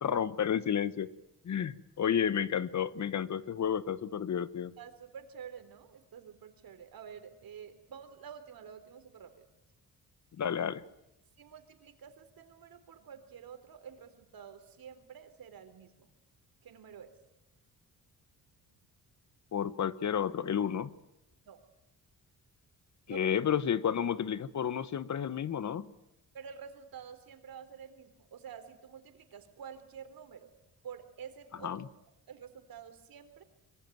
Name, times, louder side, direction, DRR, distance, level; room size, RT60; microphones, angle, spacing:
voice 1, 0.0-1.1 1.4-4.7 10.4-10.8 19.5-20.9 23.1-25.9 31.6-31.8, left 8 dB, 50° left, 16 dB, 1.1 m, -31 dB
voice 2, 4.8-9.4 11.4-16.1 16.6-17.1 21.5-21.6 23.1-23.3 26.3-30.5 30.8-31.9 32.3-33.4, right 7 dB, 70° right, 9 dB, 3.7 m, -49 dB
25.0 x 23.5 x 9.2 m, 0.87 s
cardioid pair, 115°, 37 cm